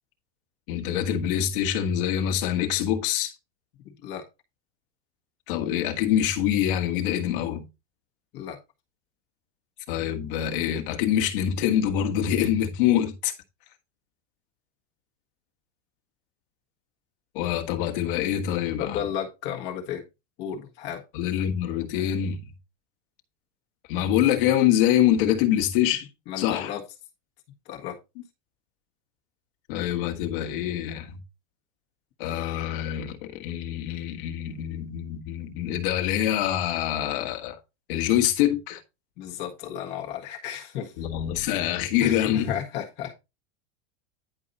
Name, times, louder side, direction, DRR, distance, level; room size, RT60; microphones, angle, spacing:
voice 1, 0.7-3.3 5.5-7.6 9.9-13.3 17.3-19.0 21.1-22.4 23.9-26.1 26.4-26.7 29.7-31.2 32.2-37.6 37.9-38.8 41.0-42.5, left 11 dB, 45° left, 1.5 m, -25 dB
voice 2, 18.8-20.0 20.4-21.0 26.3-26.8 27.6-28.0 39.2-40.9 42.0-43.1, left 9 dB, 30° left, 1.6 m, -33 dB
10.5 x 4.7 x 4.1 m
supercardioid pair, 175°, 36 cm